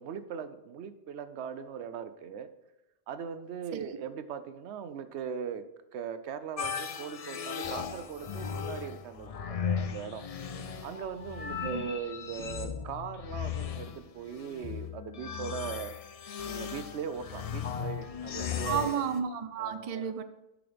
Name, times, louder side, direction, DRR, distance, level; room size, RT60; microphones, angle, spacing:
voice 1, 0.0-2.5 3.1-5.6 5.9-10.3 10.8-15.9 16.5-19.0 19.6-20.1, right 7 dB, 75° right, 11 dB, 0.9 m, -40 dB
sound 1, 6.6-19.2, left 7 dB, 55° left, 0.4 m, -37 dB
voice 2, 11.6-11.9 18.6-20.2, right 7 dB, 50° right, 10 dB, 0.5 m, -32 dB
8.7 x 6.2 x 3.4 m, 0.97 s
omnidirectional pair, 1.2 m